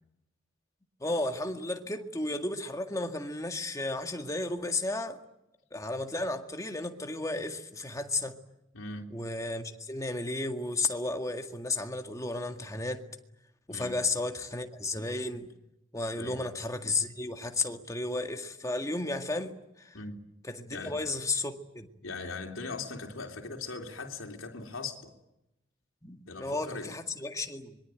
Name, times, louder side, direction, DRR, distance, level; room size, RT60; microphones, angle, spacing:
voice 1, 1.0-5.2 5.7-8.4 9.1-13.0 13.7-15.5 15.9-20.0 20.4-21.9 26.0-27.8, left 2 dB, 15° left, 1.9 m, -33 dB
voice 2, 8.7-9.1 13.7-14.1 16.1-16.5 19.9-20.1 20.7-21.0 22.0-25.2 26.2-27.0, left 3 dB, 80° left, 3.3 m, -40 dB
25.5 x 23.0 x 9.2 m
head